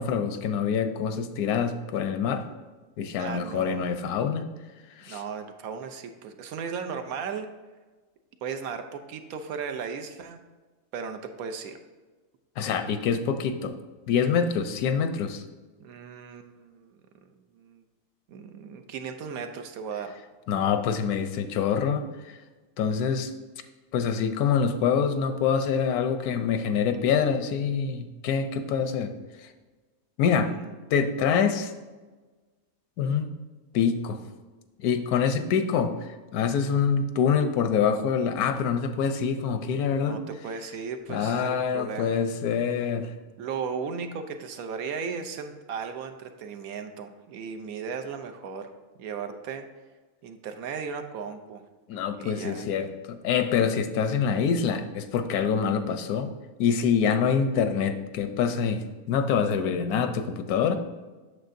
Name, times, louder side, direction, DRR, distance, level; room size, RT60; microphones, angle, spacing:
voice 1, 0.0-2.4 3.0-4.5 5.0-5.2 12.6-13.7 14.1-15.4 20.5-22.4 22.8-23.3 23.9-29.1 30.2-30.5 30.9-31.7 33.0-33.3 33.7-34.2 34.8-40.2 41.1-43.1 51.9-56.3 56.6-60.8, left 6 dB, 85° left, 8 dB, 1.1 m, -25 dB
voice 2, 3.2-3.9 5.1-7.5 8.4-10.4 10.9-11.8 15.8-17.0 17.6-17.8 18.3-20.1 30.4-30.7 40.0-42.3 43.4-48.7 49.0-49.6 50.2-51.6 52.2-52.6, right 6 dB, 75° right, 7 dB, 1.1 m, -36 dB
8.1 x 6.5 x 2.6 m, 1.3 s
omnidirectional pair, 1.6 m